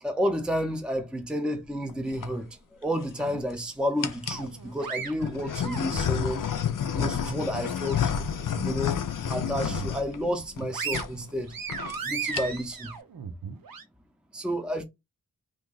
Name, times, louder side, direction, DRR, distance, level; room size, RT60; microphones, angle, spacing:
voice 1, 0.0-6.4 6.9-9.0 9.3-11.6 12.0-12.9 14.3-14.8, equal, 5° right, 0.7 m, -31 dB
sound 1, 1.9-2.3 3.0-3.5 4.0-4.5 5.2-10.6 10.9-11.1 11.4-11.5 11.7-12.0 12.2-12.7, left 8 dB, 65° left, 0.5 m, -30 dB
sound 2, 4.3-6.3 6.7-8.2 8.6-8.7 9.2-10.0 10.4-13.8, right 6 dB, 75° right, 0.8 m, -37 dB
2.9 x 2.7 x 3.7 m
wide cardioid pair, 65°, 35 cm